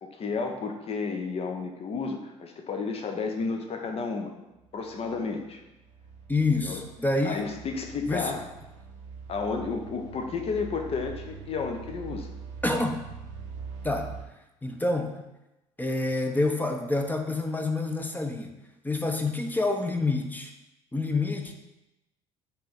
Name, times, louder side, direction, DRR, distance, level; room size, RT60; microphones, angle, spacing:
voice 1, 0.0-4.3 4.7-5.6 6.6-6.8 7.2-8.4 9.3-12.3, left 4 dB, 35° left, 4 dB, 0.9 m, -32 dB
sound 1, 4.6-14.2, right 6 dB, 70° right, 0.8 m, -43 dB
voice 2, 6.3-7.4 8.1-8.3 12.6-13.1 13.8-14.1 14.6-15.2 15.8-18.5 18.8-20.5 20.9-21.5, left 2 dB, 10° left, 4 dB, 0.8 m, -27 dB
8.0 x 3.2 x 4.1 m, 0.95 s
figure-of-eight pair, 55°, 16 cm